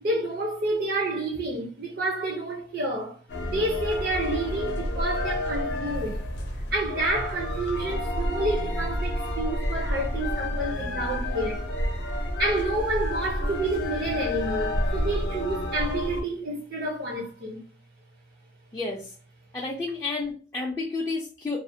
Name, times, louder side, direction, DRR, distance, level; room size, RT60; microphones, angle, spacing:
voice 1, 0.0-3.2 3.5-6.2 6.7-11.6 12.4-17.6, right 1 dB, 55° right, 0.5 m, -29 dB
sound 1, 3.3-16.2, left 1 dB, 70° left, 0.6 m, -30 dB
voice 2, 18.7-19.1 19.5-21.6, left 3 dB, 15° left, 0.3 m, -31 dB
2.4 x 2.1 x 2.6 m
head